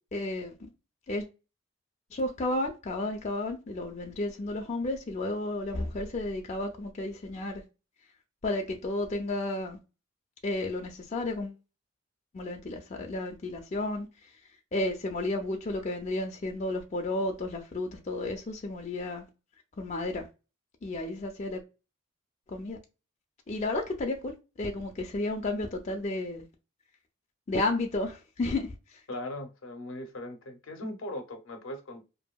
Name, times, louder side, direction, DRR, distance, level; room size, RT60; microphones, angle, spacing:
voice 1, 0.1-0.5 1.1-1.3 2.1-7.6 8.4-9.8 10.4-11.6 12.3-14.1 14.7-19.2 19.8-20.2 20.8-21.6 22.5-22.8 23.5-24.3 24.6-26.5 27.5-29.0, left 2 dB, 35° left, 0.4 m, -32 dB
voice 2, 29.1-32.0, left 1 dB, 75° left, 0.6 m, -39 dB
2.6 x 2.5 x 2.2 m
head